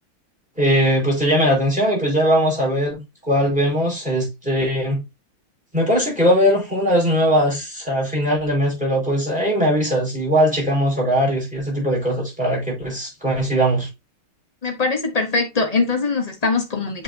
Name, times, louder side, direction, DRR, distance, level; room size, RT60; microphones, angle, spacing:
voice 1, 0.6-5.0 5.7-13.9, equal, 5° right, 4.7 m, -20 dB
voice 2, 14.6-17.0, left 4 dB, 60° left, 0.4 m, -22 dB
7.8 x 5.2 x 2.7 m
omnidirectional pair, 2.4 m